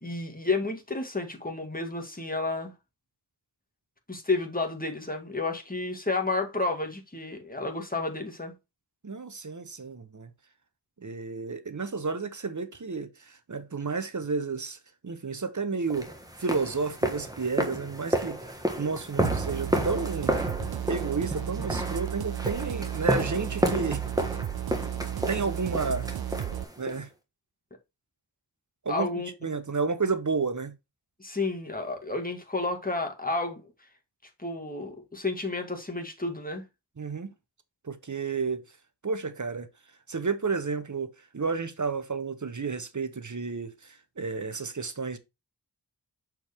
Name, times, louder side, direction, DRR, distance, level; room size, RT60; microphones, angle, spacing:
voice 1, 0.0-2.7 4.1-8.5 28.9-29.3 31.2-33.6 34.4-36.6, left 3 dB, 20° left, 1.8 m, -31 dB
voice 2, 9.0-10.3 11.0-14.8 15.0-16.1 16.4-20.4 20.9-24.0 25.3-26.1 26.8-27.1 28.8-30.7 37.0-37.3 37.8-38.6 39.0-39.7 40.1-45.2, right 4 dB, 45° right, 0.9 m, -31 dB
sound 1, 15.9-27.0, right 1 dB, 10° right, 1.5 m, -31 dB
sound 2, 19.2-26.6, right 11 dB, 65° right, 0.5 m, -33 dB
6.2 x 4.7 x 3.5 m
wide cardioid pair, 40°, 41 cm